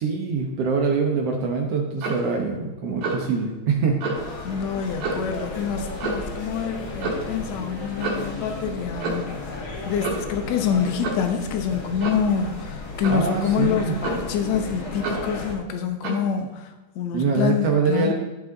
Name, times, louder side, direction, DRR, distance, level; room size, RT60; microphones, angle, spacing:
voice 1, 0.0-4.0 13.1-14.0 17.1-18.1, right 5 dB, 65° right, 1 dB, 1.5 m, -24 dB
Clock, 2.0-2.3 3.0-3.3 4.0-4.2 5.0-5.3 6.0-6.3 7.0-7.3 8.0-8.3 9.0-9.4 10.0-10.3 11.0-11.3 12.0-12.3 13.0-13.3 14.0-14.4 15.0-15.3 16.0-16.3, right 3 dB, 85° right, 3.9 m, -29 dB
sound 1, 4.1-15.5, left 3 dB, 45° left, 1.9 m, -35 dB
voice 2, 4.4-18.1, left 7 dB, 70° left, 6 dB, 1.8 m, -26 dB
14.0 x 5.6 x 3.9 m, 1.2 s
omnidirectional pair, 4.0 m